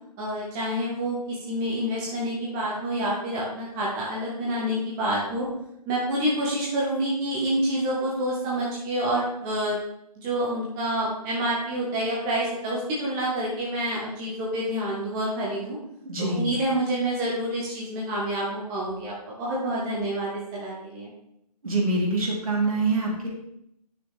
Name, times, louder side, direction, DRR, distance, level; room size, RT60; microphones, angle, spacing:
voice 1, 0.2-5.5 5.9-9.8 10.2-15.8 16.2-21.1, right 1 dB, 20° right, -5 dB, 1.5 m, -28 dB
voice 2, 16.0-16.5 21.6-23.3, right 2 dB, 60° right, -3 dB, 3.2 m, -25 dB
9.5 x 6.5 x 3.5 m, 0.77 s
figure-of-eight pair, 135°, 21 cm